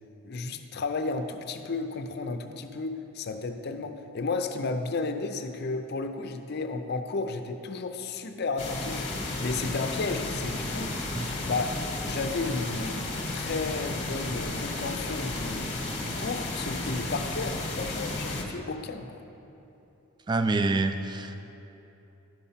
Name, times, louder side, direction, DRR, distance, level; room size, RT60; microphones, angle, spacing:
voice 1, 0.2-11.0 11.4-13.0 13.3-15.7 16.0-19.2, left 3 dB, 50° left, 7 dB, 0.5 m, -33 dB
sound 1, 8.6-18.4, left 2 dB, 30° left, 1.1 m, -33 dB
voice 2, 20.3-21.3, right 3 dB, 20° right, 8 dB, 0.3 m, -26 dB
12.0 x 5.6 x 5.7 m, 3.0 s
head